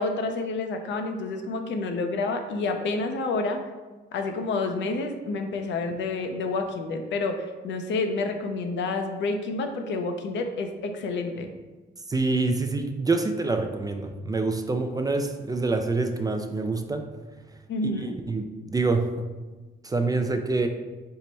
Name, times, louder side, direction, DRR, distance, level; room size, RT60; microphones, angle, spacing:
voice 1, 0.0-3.6 4.1-11.5 17.7-18.2, left 3 dB, 70° left, 5 dB, 0.5 m, -29 dB
voice 2, 12.1-17.0 18.0-19.3 19.8-20.7, right 3 dB, 20° right, 6 dB, 0.3 m, -26 dB
4.5 x 2.1 x 4.0 m, 1.2 s
cardioid pair, 90°, 20 cm